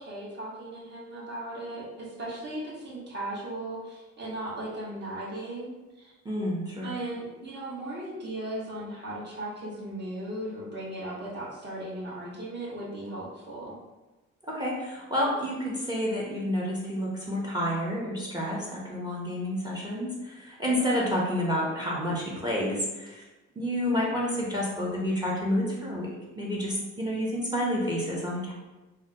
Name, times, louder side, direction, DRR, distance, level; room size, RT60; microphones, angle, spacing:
voice 1, 0.0-6.1 6.8-13.8, right 1 dB, 35° right, -6 dB, 1.3 m, -37 dB
voice 2, 6.2-6.9 14.5-23.2 23.6-28.5, equal, 15° right, -4 dB, 0.7 m, -29 dB
3.6 x 2.2 x 2.7 m, 1.1 s
cardioid pair, 90°, 30 cm